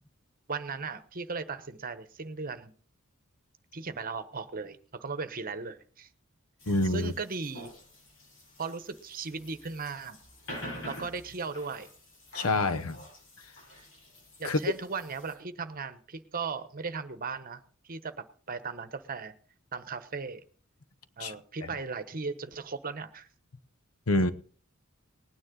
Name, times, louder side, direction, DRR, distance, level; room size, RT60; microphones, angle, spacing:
voice 1, 0.5-2.7 3.7-6.1 6.8-7.7 8.6-10.2 10.9-11.9 14.4-19.3 19.7-20.4 21.2-23.3, right 4 dB, 40° right, 1.1 m, -37 dB
sound 1, 6.6-15.3, left 1 dB, 65° left, 7.9 m, -47 dB
voice 2, 6.7-7.1 12.3-13.0 14.4-14.6 21.2-21.3 24.1-24.3, left 2 dB, 90° left, 1.0 m, -26 dB
19.5 x 9.7 x 3.9 m
head